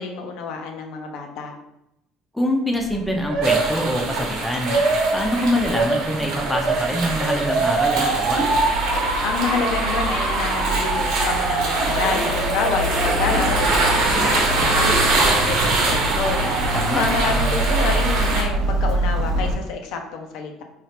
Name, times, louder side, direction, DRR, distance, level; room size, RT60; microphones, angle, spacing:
voice 1, 0.0-1.5 9.2-16.4 16.9-20.6, left 5 dB, 70° left, 3 dB, 0.4 m, -28 dB
voice 2, 2.3-4.8 5.1-8.4 16.7-17.0, equal, 5° left, 2 dB, 0.4 m, -24 dB
Motor vehicle (road) / Siren, 2.7-19.6, right 2 dB, 60° right, 0.5 m, -24 dB
sound 1, 3.4-18.4, right 2 dB, 75° right, 0.8 m, -24 dB
3.1 x 2.4 x 2.8 m, 0.83 s
cardioid pair, 115°, 0 cm